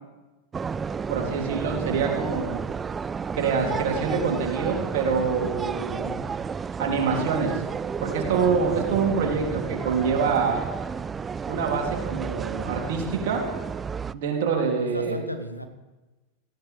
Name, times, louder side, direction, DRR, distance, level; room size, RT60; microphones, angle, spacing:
sound 1, 0.5-14.1, right 6 dB, 20° right, 0.3 m, -32 dB
voice 1, 1.1-2.6 3.3-6.2 6.8-7.6 8.0-10.6 11.5-13.5 14.1-15.1, right 5 dB, 50° right, 1 dB, 2.9 m, -26 dB
voice 2, 14.8-15.7, equal, 90° left, 7 dB, 1.3 m, -35 dB
18.0 x 15.5 x 3.5 m, 1.1 s
figure-of-eight pair, 90°, 0 cm